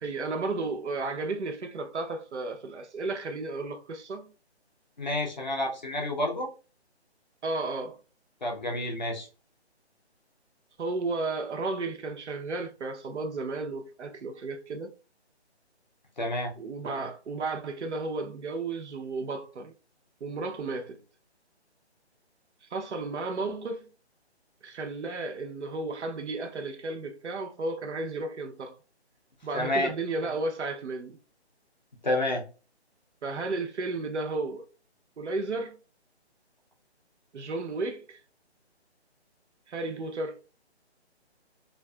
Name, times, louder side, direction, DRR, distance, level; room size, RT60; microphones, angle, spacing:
voice 1, 0.0-4.3 7.4-8.0 10.8-14.9 16.6-19.7 20.2-21.0 22.6-23.9 24.6-28.8 29.4-31.2 33.2-34.7 35.2-35.8 37.3-38.2 39.7-40.4, right 3 dB, 80° right, 0.7 m, -33 dB
voice 2, 5.0-6.5 8.4-9.3 16.2-16.5 29.5-29.9 32.0-32.4, left 1 dB, 40° left, 0.5 m, -29 dB
2.5 x 2.4 x 2.2 m
hypercardioid pair, 175°, 34 cm